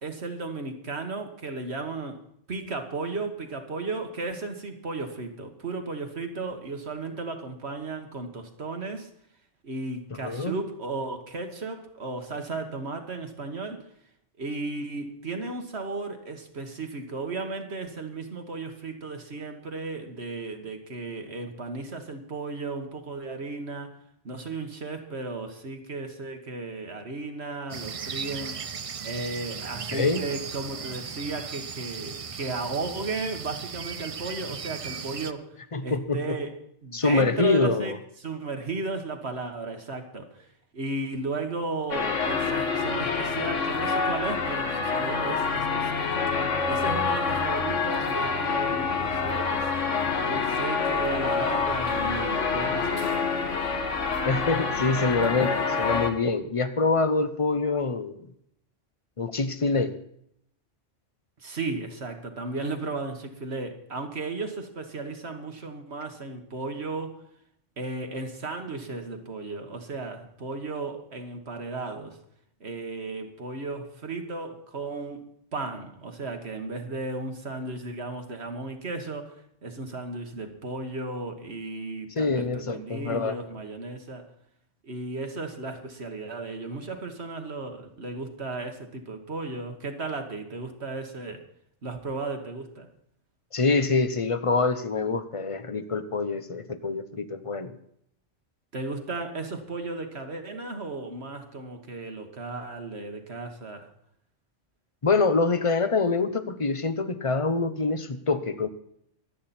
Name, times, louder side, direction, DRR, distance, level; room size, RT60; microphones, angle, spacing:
voice 1, 0.0-2.2 2.5-9.1 9.6-13.8 14.4-24.0 24.2-28.6 29.0-35.5 35.8-36.5 36.8-40.5 40.7-46.3 46.6-49.7 50.3-53.3 61.4-67.2 67.8-72.2 72.6-79.4 79.6-84.3 84.8-91.4 91.8-92.9 98.7-103.9, right 3 dB, 60° right, 5 dB, 1.8 m, -35 dB
voice 2, 10.2-10.6 29.9-30.2 35.7-36.4 36.9-38.0 54.2-58.3 59.2-60.0 82.2-83.4 93.5-97.7 105.0-108.7, left 3 dB, 30° left, 11 dB, 0.9 m, -25 dB
sound 1, 27.7-35.3, right 6 dB, 40° right, 0.5 m, -37 dB
sound 2, 41.9-56.1, left 5 dB, 90° left, 1.7 m, -27 dB
25.0 x 8.6 x 4.3 m, 0.72 s
omnidirectional pair, 1.2 m